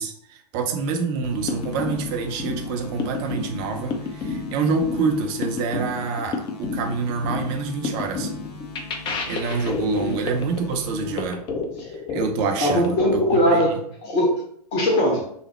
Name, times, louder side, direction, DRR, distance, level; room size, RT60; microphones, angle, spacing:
voice 1, 0.0-8.3 9.3-11.4 12.1-13.8, right 4 dB, 35° right, 4 dB, 0.6 m, -27 dB
sound 1, 1.2-11.2, left 3 dB, 70° left, 0.7 m, -41 dB
sound 2, 1.2-13.6, left 4 dB, 25° left, 0.5 m, -31 dB
voice 2, 12.6-14.4 14.7-15.2, equal, 40° left, 0 dB, 1.1 m, -20 dB
3.2 x 2.0 x 4.2 m, 0.67 s
figure-of-eight pair, 100°, 21 cm